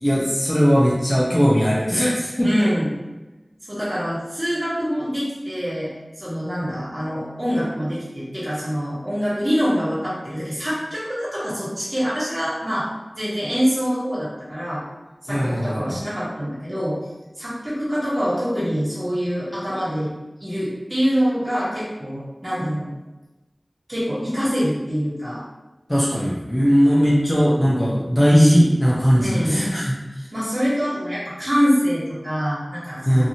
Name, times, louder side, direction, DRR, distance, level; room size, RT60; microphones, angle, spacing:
voice 1, 0.0-2.7 15.3-16.0 25.9-29.9 33.1-33.3, equal, 20° left, -6 dB, 0.7 m, -18 dB
voice 2, 2.4-2.9 3.7-5.9 6.2-12.9 13.2-14.8 15.2-17.0 17.4-20.1 20.4-22.9 23.9-25.4 26.9-27.3 29.2-29.6 30.3-33.3, equal, 30° right, -11 dB, 1.2 m, -25 dB
2.9 x 2.6 x 2.7 m, 1.1 s
wide cardioid pair, 40°, 0 cm